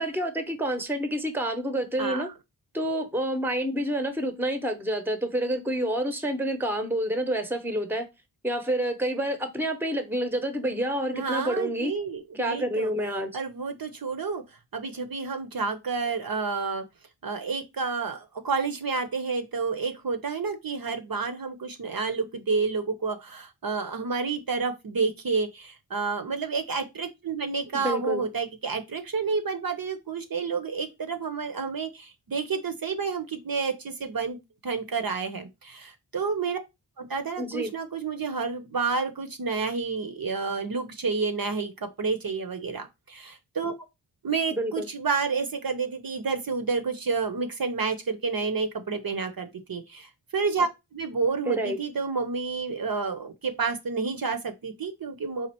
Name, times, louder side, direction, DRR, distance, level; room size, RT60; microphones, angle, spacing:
voice 1, 0.0-2.3 2.7-8.1 8.4-11.9 12.3-13.3 27.7-28.2 37.4-37.7 44.5-44.9 51.5-51.8, right 1 dB, 5° right, 0.8 m, -28 dB
voice 2, 11.1-12.9 13.3-14.4 14.7-16.8 17.2-36.6 37.0-43.7 44.2-55.5, right 4 dB, 55° right, 0.7 m, -30 dB
4.2 x 2.4 x 4.3 m
wide cardioid pair, 80°, 43 cm